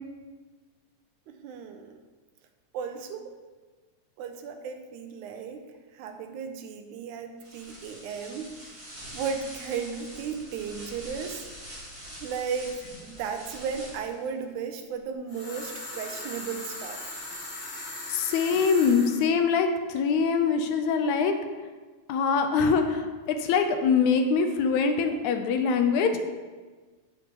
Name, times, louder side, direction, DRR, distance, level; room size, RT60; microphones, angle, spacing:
voice 1, 1.3-1.9 2.7-3.3 4.2-5.7 5.9-8.5 9.1-11.5 12.2-12.7 13.0-17.0, right 6 dB, 85° right, 6 dB, 2.1 m, -35 dB
sound 1, 7.4-14.3, equal, 25° right, 1.6 m, -44 dB
sound 2, 15.3-19.2, left 2 dB, 55° left, 2.9 m, -39 dB
voice 2, 18.1-21.3 22.1-26.2, left 5 dB, 85° left, 6 dB, 2.0 m, -24 dB
8.5 x 6.5 x 3.0 m, 1.4 s
omnidirectional pair, 3.4 m